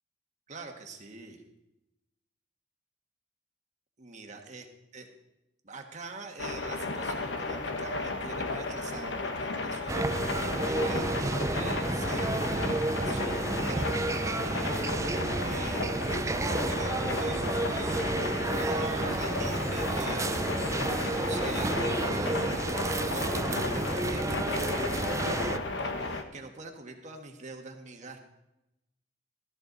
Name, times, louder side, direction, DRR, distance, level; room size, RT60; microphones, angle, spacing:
voice 1, 0.5-1.4 4.0-4.6 4.9-5.1 5.6-28.2, right 3 dB, 40° right, 3 dB, 1.5 m, -44 dB
sound 1, 6.4-26.2, left 3 dB, 80° left, 1.1 m, -34 dB
sound 2, 9.9-25.6, right 2 dB, 15° right, 0.3 m, -31 dB
14.0 x 13.5 x 4.0 m, 0.91 s
head